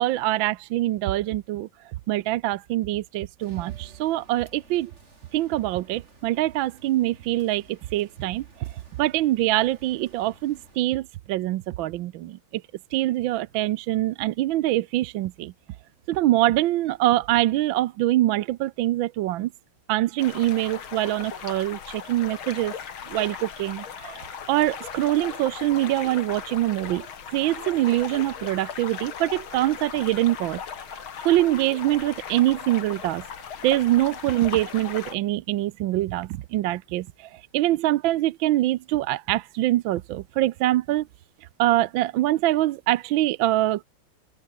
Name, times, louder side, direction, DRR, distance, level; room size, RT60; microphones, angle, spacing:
voice 1, 0.0-1.7 2.1-4.9 5.3-8.7 9.0-12.6 12.9-15.5 16.1-19.5 19.9-22.7 23.1-24.2 24.5-30.6 30.9-33.2 33.6-41.1 41.6-43.8, right 15 dB, 70° right, 1.3 m, -24 dB
sound 1, 3.4-10.8, right 3 dB, 30° right, 3.5 m, -53 dB
sound 2, 20.2-35.2, left 7 dB, 70° left, 2.7 m, -38 dB
open air
omnidirectional pair, 2.4 m